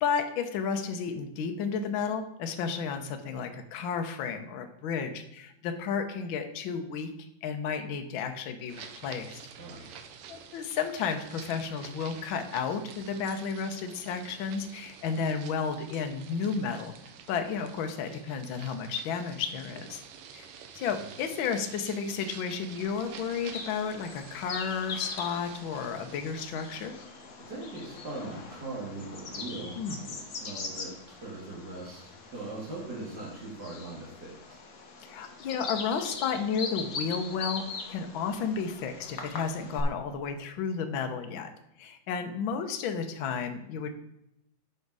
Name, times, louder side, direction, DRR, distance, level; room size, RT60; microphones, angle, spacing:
voice 1, 0.0-7.1 7.4-9.4 10.3-16.9 17.3-20.0 20.3-26.9 29.7-30.0 35.0-41.5 41.8-43.9, left 6 dB, 80° left, 6 dB, 1.1 m, -32 dB
sound 1, 8.7-26.9, right 7 dB, 75° right, 1.3 m, -49 dB
voice 2, 9.6-9.9 20.9-21.0 27.5-30.9 31.2-34.4, right 2 dB, 40° right, -5 dB, 2.2 m, -40 dB
Bird vocalization bird call bird song, 22.8-39.8, left 4 dB, 65° left, 0.8 m, -41 dB
9.3 x 5.7 x 4.8 m, 0.81 s
omnidirectional pair, 3.4 m